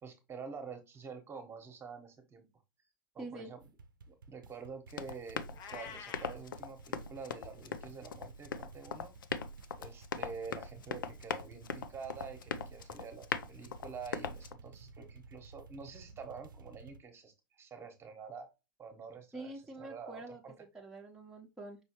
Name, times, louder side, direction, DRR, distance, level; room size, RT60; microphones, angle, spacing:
voice 1, 0.0-2.4 3.1-3.7 4.1-9.1 9.8-18.5 18.8-20.5, right 5 dB, 25° right, 6 dB, 1.2 m, -48 dB
voice 2, 3.2-3.5 19.3-20.4 20.7-21.8, right 2 dB, 5° right, -3 dB, 0.9 m, -46 dB
sound 1, 3.6-17.0, right 4 dB, 90° right, 0.6 m, -55 dB
Run, 4.9-14.5, left 6 dB, 85° left, 0.6 m, -41 dB
Meow, 5.5-6.4, left 7 dB, 40° left, 0.9 m, -47 dB
5.5 x 3.1 x 3.0 m, 0.26 s
hypercardioid pair, 105°, 11 cm